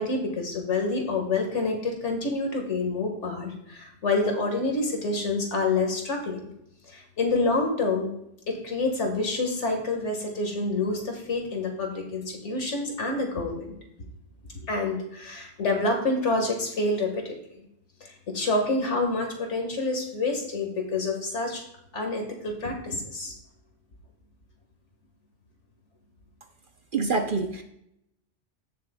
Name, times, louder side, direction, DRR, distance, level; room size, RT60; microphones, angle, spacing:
voice 1, 0.0-6.5 6.9-8.1 8.5-13.8 14.6-17.7 18.0-21.6 21.9-23.3, left 3 dB, 70° left, 2 dB, 1.9 m, -28 dB
voice 2, 26.9-27.6, right 4 dB, 50° right, 5 dB, 0.7 m, -26 dB
15.0 x 6.6 x 2.2 m, 0.78 s
omnidirectional pair, 1.3 m